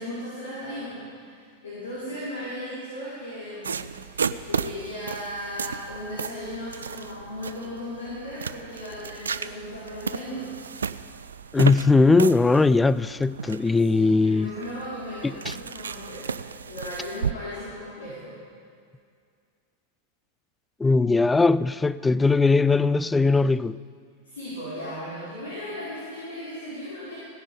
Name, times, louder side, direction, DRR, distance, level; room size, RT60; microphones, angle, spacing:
voice 1, 0.0-4.1 4.5-10.5 13.8-16.3 16.7-18.4 24.2-27.2, left 1 dB, 70° left, 4.6 m, -36 dB
sound 1, 3.6-17.3, right 6 dB, 70° right, 0.4 m, -34 dB
voice 2, 11.5-14.5 15.2-15.5 20.8-23.8, left 3 dB, 10° left, 0.3 m, -20 dB
17.0 x 10.0 x 5.4 m
figure-of-eight pair, 90°, 0 cm